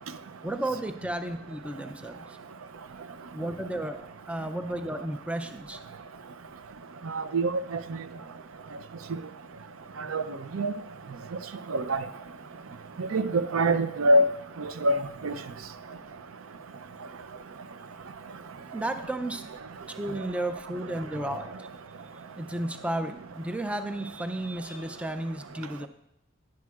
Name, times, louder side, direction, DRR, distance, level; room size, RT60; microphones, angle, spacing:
voice 1, 0.4-2.4 3.3-5.8 18.7-19.5 19.9-21.7 22.4-25.9, right 1 dB, 5° right, 0.4 m, -33 dB
voice 2, 7.1-7.8 10.1-10.2 10.5-10.7 11.7-12.0 13.0-14.2 14.6-15.0 15.2-15.3, right 1 dB, 75° right, 0.5 m, -24 dB
10.5 x 10.5 x 2.4 m
head